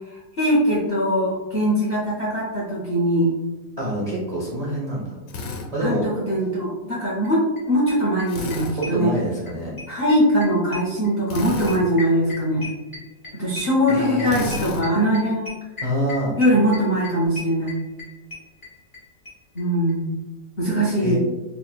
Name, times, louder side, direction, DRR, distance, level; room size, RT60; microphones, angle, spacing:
voice 1, 0.4-3.3 5.8-9.1 9.9-12.7 13.3-15.5 16.4-17.7 19.5-20.1 20.6-21.2, equal, 60° left, -5 dB, 0.6 m, -21 dB
voice 2, 3.8-5.2 5.7-6.1 8.8-9.7 13.9-14.4 15.8-16.4 21.0-21.2, equal, 75° right, -6 dB, 0.3 m, -26 dB
Drill, 5.3-5.7 8.3-8.8 11.3-11.8 14.3-14.8, left 2 dB, 85° left, 1.3 m, -31 dB
sound 1, 7.2-7.3 7.6-7.7 7.9-9.5 9.8-19.0 19.2-19.3 19.6-19.7 19.9-20.0, left 3 dB, 15° left, 1.1 m, -36 dB
4.1 x 3.4 x 2.2 m, 1.2 s
omnidirectional pair, 1.9 m